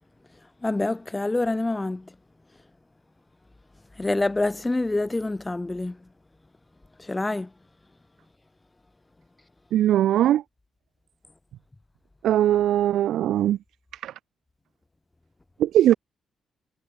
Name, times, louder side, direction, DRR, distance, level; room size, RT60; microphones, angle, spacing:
voice 1, 0.6-2.0 4.0-6.0 7.1-7.5, left 2 dB, 10° left, 0.6 m, -26 dB
voice 2, 9.7-10.4 12.2-13.6 14.0-14.1 15.6-15.9, right 12 dB, 75° right, 0.8 m, -20 dB
cardioid pair, 175°, 0 cm